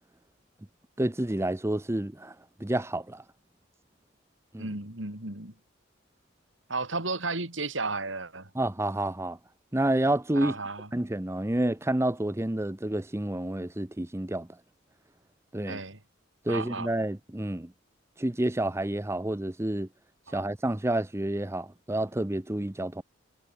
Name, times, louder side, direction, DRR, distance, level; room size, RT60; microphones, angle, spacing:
voice 1, 1.0-3.2 4.5-4.7 8.5-9.4 9.7-10.5 10.9-14.5 15.5-15.8 16.4-17.7 18.2-19.9 20.3-23.0, right 1 dB, 15° right, 0.7 m, -29 dB
voice 2, 4.6-5.5 6.7-8.5 10.3-10.9 15.7-16.0 16.5-16.9 20.3-20.4, right 3 dB, 75° right, 5.0 m, -33 dB
head